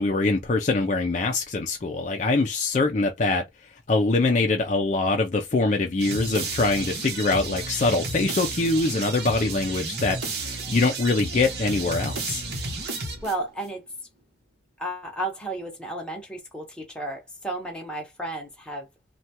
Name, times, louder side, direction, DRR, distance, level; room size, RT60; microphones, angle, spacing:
voice 1, 0.0-3.4 3.9-12.4, left 3 dB, 40° left, 0.4 m, -23 dB
sound 1, 6.0-13.6, right 3 dB, 65° right, 0.9 m, -32 dB
voice 2, 12.7-13.8 14.8-18.9, right 1 dB, 5° left, 0.9 m, -33 dB
3.2 x 2.2 x 2.8 m
head